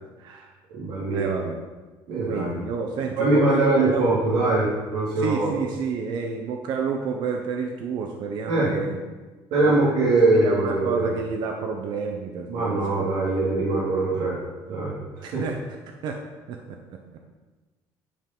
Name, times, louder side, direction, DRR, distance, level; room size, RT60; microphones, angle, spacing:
voice 1, 0.2-0.5 1.1-1.6 2.3-4.1 5.2-9.0 9.6-13.1 15.2-15.6 16.0-16.2 16.5-17.0, right 5 dB, 55° right, 3 dB, 0.9 m, -30 dB
voice 2, 0.7-1.2 2.1-2.5 3.2-5.5 8.5-8.7 9.5-11.1 12.5-14.4 14.7-15.4, right 2 dB, 90° right, -8 dB, 3.0 m, -22 dB
10.5 x 5.3 x 5.5 m, 1.2 s
cardioid pair, 180°, 9 cm